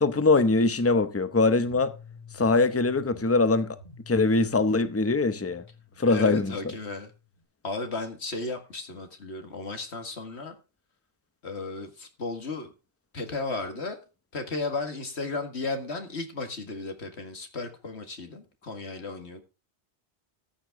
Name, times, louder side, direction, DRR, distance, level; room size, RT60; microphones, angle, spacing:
voice 1, 0.0-1.9 2.3-3.8 4.1-5.6 6.0-6.6, left 3 dB, 15° left, 0.7 m, -22 dB
sound 1, 1.4-7.4, left 4 dB, 40° left, 2.3 m, -49 dB
voice 2, 6.1-7.1 7.6-10.6 11.4-12.7 13.1-14.0 14.3-19.4, left 3 dB, 85° left, 2.2 m, -34 dB
14.0 x 9.0 x 3.7 m
omnidirectional pair, 1.1 m